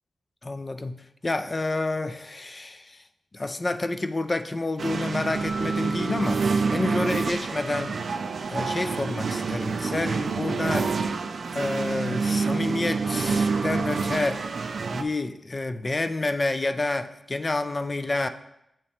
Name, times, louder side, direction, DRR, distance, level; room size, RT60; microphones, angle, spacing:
voice 1, 0.4-3.0 3.3-7.9 8.5-10.9 11.5-14.5 14.9-18.3, left 2 dB, 30° left, 10 dB, 0.4 m, -29 dB
sound 1, 4.8-15.0, right 4 dB, 65° right, 0.3 m, -27 dB
Keyboard (musical), 5.3-7.7, right 2 dB, ahead, 1.4 m, -41 dB
7.5 x 3.1 x 4.2 m, 0.83 s
cardioid pair, 80°, 0 cm